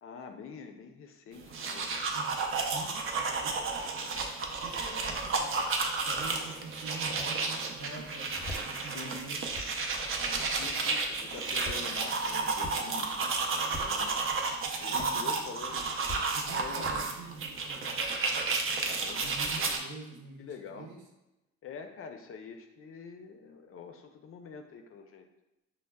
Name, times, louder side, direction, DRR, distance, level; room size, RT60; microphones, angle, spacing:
voice 1, 0.0-2.0 8.8-9.2 10.5-14.4 14.8-15.9 16.5-17.1 18.8-19.8 20.4-20.9 21.6-25.3, left 5 dB, 45° left, 6 dB, 0.4 m, -46 dB
sound 1, 1.4-19.8, right 4 dB, 45° right, 0.5 m, -32 dB
voice 2, 2.1-4.3 4.6-5.6 6.0-9.4 10.2-10.6 14.9-15.4 16.3-18.4 19.1-21.0, right 3 dB, 75° right, 0 dB, 0.8 m, -46 dB
sound 2, 6.2-6.3 7.2-7.3 8.2-8.7 9.3-9.7 10.6-10.8 11.5-11.8 12.6-12.8 13.6-14.1 15.0-15.1 16.1-16.2 16.8-17.0, left 1 dB, 10° left, 0.7 m, -42 dB
5.1 x 2.0 x 2.2 m, 0.96 s
cardioid pair, 90°, 30 cm